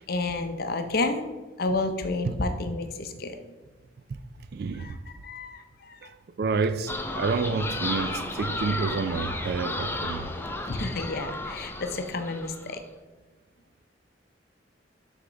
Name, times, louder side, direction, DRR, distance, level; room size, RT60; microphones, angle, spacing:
voice 1, 0.0-1.3 1.6-3.4 4.8-6.1 10.7-12.8, left 2 dB, 55° left, 0.6 m, -30 dB
voice 2, 4.4-5.0 6.0-10.3, right 4 dB, 55° right, 0.4 m, -29 dB
sound 1, 6.9-12.8, left 2 dB, 10° left, 0.5 m, -33 dB
6.7 x 3.6 x 5.1 m
head